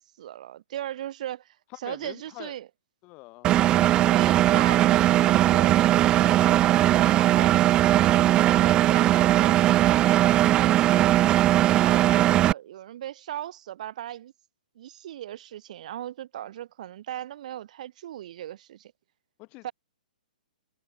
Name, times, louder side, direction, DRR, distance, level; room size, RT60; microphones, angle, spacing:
voice 1, 0.0-1.6 1.8-2.7 4.0-11.4 11.8-14.3 14.7-18.9 19.6-19.7, right 12 dB, 50° right, 5.0 m, -38 dB
voice 2, 1.7-2.5 3.0-3.5 3.9-4.2 19.4-19.6, left 26 dB, 30° left, 3.4 m, -44 dB
Engine, 3.4-12.5, right 13 dB, 15° right, 0.3 m, -19 dB
hypercardioid pair, 155°, 5 cm